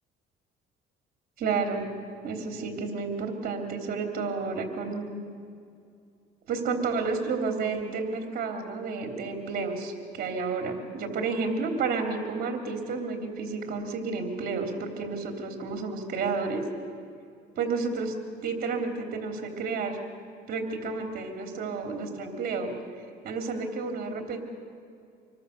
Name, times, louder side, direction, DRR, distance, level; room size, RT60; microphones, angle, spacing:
voice 1, 1.4-1.9 2.2-5.2 6.5-16.6 17.6-18.1 18.4-20.0 20.5-22.7 23.2-24.4, right 4 dB, 60° right, 3 dB, 3.4 m, -31 dB
26.5 x 22.0 x 6.8 m, 2.4 s
cardioid pair, 110°, 17 cm